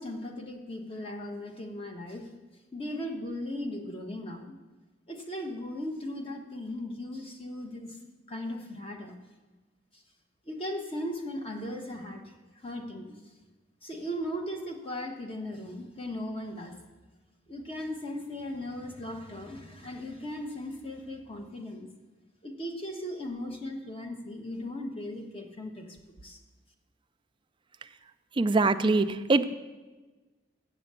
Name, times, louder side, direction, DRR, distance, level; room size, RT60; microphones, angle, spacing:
voice 1, 0.0-2.3 2.7-4.6 5.1-8.0 8.3-9.1 9.9-10.0 10.4-13.2 13.8-16.7 17.5-21.9 22.4-26.0 26.2-26.4, left 1 dB, 30° left, 3 dB, 1.1 m, -37 dB
voice 2, 28.4-29.5, right 3 dB, 25° right, 10 dB, 0.4 m, -23 dB
7.5 x 6.8 x 8.1 m, 1.3 s
head